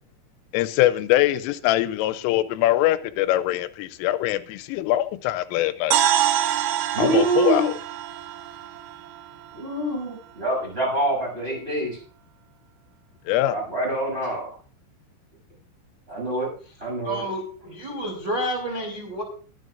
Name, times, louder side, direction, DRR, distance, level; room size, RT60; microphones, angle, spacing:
voice 1, 0.5-6.0 7.0-7.7 13.3-13.6, left 14 dB, 85° left, 3.3 m, -23 dB
sound 1, 5.9-9.9, right 11 dB, 80° right, 2.9 m, -26 dB
voice 2, 6.9-7.7 9.5-12.0 13.5-14.5 16.1-16.5 16.8-17.3, right 2 dB, 10° right, 7.2 m, -25 dB
voice 3, 17.0-19.2, right 1 dB, 25° right, 2.9 m, -29 dB
23.0 x 9.7 x 2.5 m
omnidirectional pair, 5.7 m